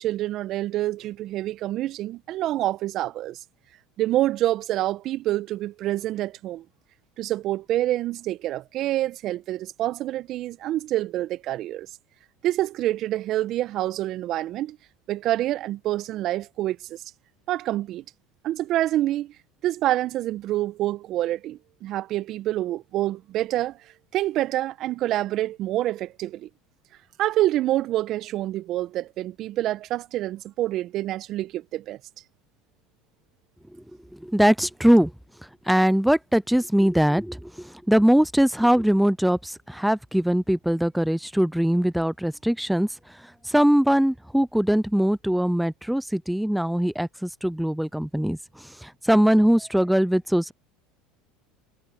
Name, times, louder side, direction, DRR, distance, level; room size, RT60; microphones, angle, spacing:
voice 1, 0.0-3.4 4.0-6.6 7.2-11.9 12.4-14.8 15.1-17.0 17.5-18.0 18.4-19.3 19.6-23.8 24.1-26.5 27.2-32.0, right 14 dB, 50° right, 1.5 m, -27 dB
voice 2, 34.2-35.1 35.7-42.9 43.4-50.5, equal, ahead, 0.6 m, -21 dB
hypercardioid pair, 80°, 0 cm